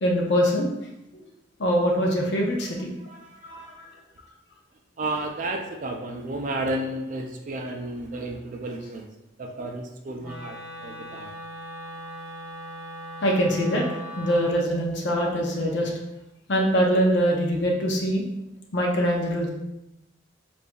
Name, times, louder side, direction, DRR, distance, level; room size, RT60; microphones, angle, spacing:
voice 1, 0.0-0.7 1.1-1.2 1.6-2.9 3.4-3.7 13.2-13.9 14.2-15.9 16.5-18.2 18.7-19.5, equal, 60° left, -1 dB, 0.6 m, -23 dB
voice 2, 5.0-9.1 9.4-11.3, right 2 dB, 40° right, 3 dB, 0.3 m, -32 dB
Wind instrument woodwind instrument, 10.2-14.6, equal, 10° right, 1.2 m, -39 dB
5.1 x 2.5 x 2.3 m, 0.91 s
head